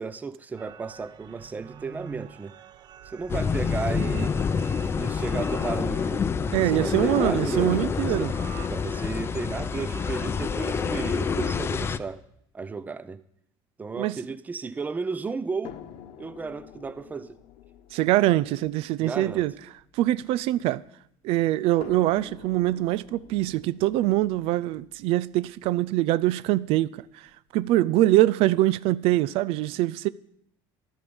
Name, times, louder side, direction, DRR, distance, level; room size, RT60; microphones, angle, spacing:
voice 1, 0.0-2.6 3.0-4.4 5.0-6.3 6.6-12.2 12.5-13.2 13.8-15.8 16.2-17.4 19.0-19.5, right 4 dB, 15° right, 0.7 m, -34 dB
sound 1, 0.6-11.2, right 9 dB, 45° right, 1.0 m, -46 dB
sound 2, 3.3-12.0, left 6 dB, 25° left, 0.6 m, -27 dB
voice 2, 6.5-8.3 13.9-14.2 17.9-19.5 19.9-20.8 21.2-27.3 27.5-30.1, right 15 dB, 70° right, 0.5 m, -23 dB
sound 3, 15.6-20.9 21.8-25.8 26.7-26.8 27.3-27.4, left 10 dB, 75° left, 1.2 m, -48 dB
13.0 x 12.0 x 7.1 m
cardioid pair, 145°, 10 cm